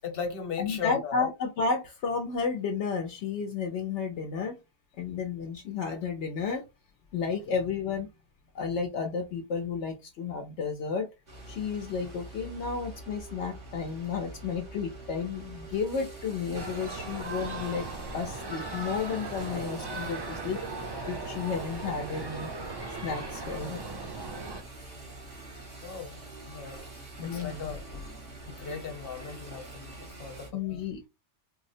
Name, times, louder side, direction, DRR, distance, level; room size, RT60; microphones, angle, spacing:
voice 1, 0.0-1.3 16.5-16.6 21.3-21.5 24.2-24.3 25.8-26.2 26.5-26.8 27.2-28.1 28.5-30.8, left 6 dB, 55° left, 1.1 m, -38 dB
voice 2, 0.6-4.6 5.0-6.6 7.1-8.1 8.5-11.1 11.5-17.9 18.1-20.6 21.1-22.5 23.0-23.8 27.2-27.6 30.5-31.1, left 5 dB, 75° left, 0.9 m, -32 dB
sound 1, 11.3-30.5, right 2 dB, 90° right, 2.2 m, -45 dB
sound 2, 16.5-24.6, right 3 dB, 35° right, 0.4 m, -38 dB
4.2 x 2.0 x 2.6 m
omnidirectional pair, 1.2 m